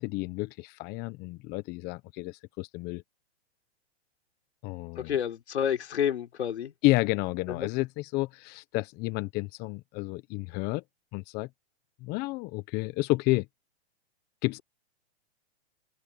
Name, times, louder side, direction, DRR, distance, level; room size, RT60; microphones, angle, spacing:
voice 1, 0.0-3.0 4.6-5.2 6.8-10.8 11.1-11.5 12.0-13.5 14.4-14.6, left 21 dB, 30° left, 1.1 m, -30 dB
voice 2, 5.0-6.7 7.6-7.7, left 9 dB, 80° left, 3.9 m, -29 dB
hypercardioid pair, 140°, 33 cm